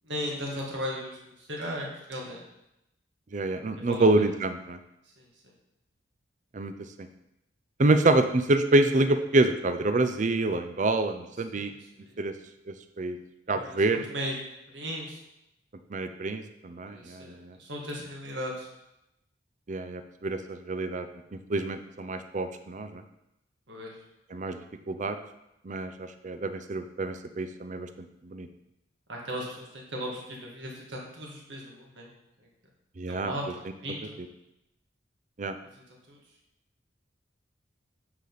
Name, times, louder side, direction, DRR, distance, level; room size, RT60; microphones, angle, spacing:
voice 1, 0.0-2.4 3.8-4.0 5.2-5.3 8.0-8.1 11.5-12.1 13.5-14.3 14.7-15.2 16.9-18.7 23.7-23.9 29.1-32.1 33.1-34.2 35.7-35.8 36.1-36.2, equal, 70° right, -2 dB, 1.9 m, -37 dB
voice 2, 3.3-4.8 6.5-6.7 7.0-7.1 7.8-11.7 12.2-12.3 12.7-13.2 13.5-14.0 15.9-17.6 19.7-21.1 21.3-23.0 24.3-25.2 25.6-28.5 33.0-33.3 35.4-35.6, right 2 dB, 40° right, 9 dB, 0.5 m, -27 dB
8.1 x 5.1 x 4.0 m, 0.86 s
head